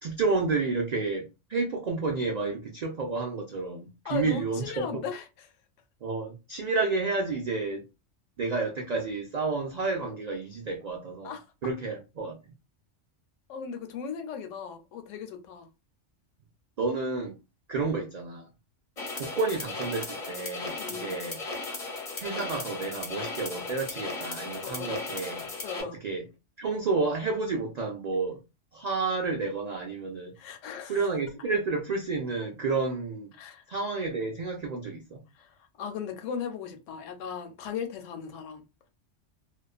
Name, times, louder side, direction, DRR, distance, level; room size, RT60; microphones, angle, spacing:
voice 1, 0.0-5.0 6.0-7.8 8.4-11.3 11.6-12.4 16.8-17.3 17.7-18.5 19.2-21.4 22.2-25.5 25.8-26.2 26.6-28.4 28.7-30.3 30.9-33.3 33.7-35.2, right 3 dB, 75° right, 0.3 m, -30 dB
voice 2, 4.0-5.5 11.2-11.4 13.5-15.7 20.8-21.2 24.6-25.0 25.6-26.0 30.4-31.1 33.3-33.6 35.3-38.6, left 7 dB, 85° left, 0.9 m, -37 dB
sound 1, 19.0-25.8, left 3 dB, 40° left, 0.7 m, -36 dB
2.4 x 2.2 x 2.3 m
omnidirectional pair, 1.2 m